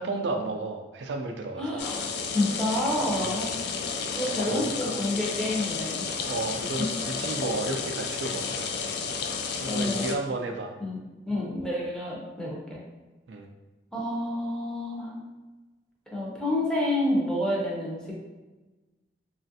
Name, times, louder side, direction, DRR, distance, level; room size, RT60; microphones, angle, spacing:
voice 1, 0.0-1.8 3.2-3.4 4.5-5.0 6.2-8.9 9.6-10.7 13.3-13.5, right 3 dB, 80° right, 3 dB, 0.4 m, -33 dB
voice 2, 1.6-3.6 4.1-6.1 9.7-10.2 10.8-11.0 11.2-12.8 13.9-15.2 16.1-18.1, left 1 dB, 5° left, -4 dB, 0.6 m, -29 dB
sound 1, 1.8-10.2, left 5 dB, 65° left, 0.3 m, -32 dB
3.1 x 2.4 x 2.7 m, 1.2 s
head